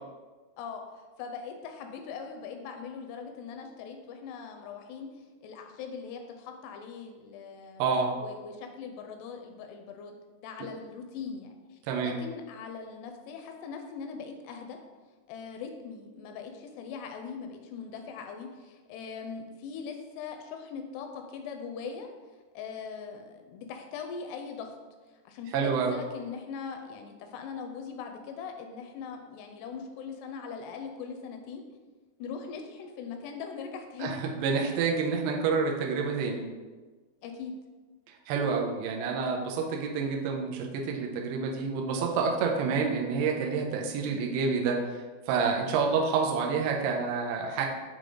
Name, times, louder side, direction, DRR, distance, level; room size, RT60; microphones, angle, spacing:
voice 1, 1.2-10.2 10.4-14.8 15.3-22.1 22.5-24.8 25.3-31.6 32.2-34.1 37.2-37.5, left 6 dB, 85° left, 4 dB, 2.5 m, -41 dB
voice 2, 7.8-8.2 11.9-12.2 25.5-25.9 34.0-36.5 38.3-45.0 45.3-47.7, right 5 dB, 80° right, 0 dB, 2.6 m, -28 dB
7.5 x 3.4 x 3.7 m, 1.3 s
omnidirectional pair, 4.8 m